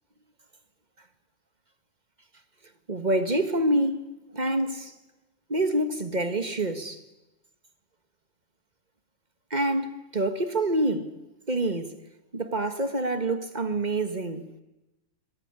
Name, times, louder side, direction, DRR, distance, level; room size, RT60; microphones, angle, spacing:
voice 1, 2.9-4.1 4.3-4.9 5.5-7.0 9.5-11.1 11.5-11.9 12.3-14.5, right 1 dB, 20° right, 1.8 m, -26 dB
26.0 x 22.5 x 9.8 m
omnidirectional pair, 2.2 m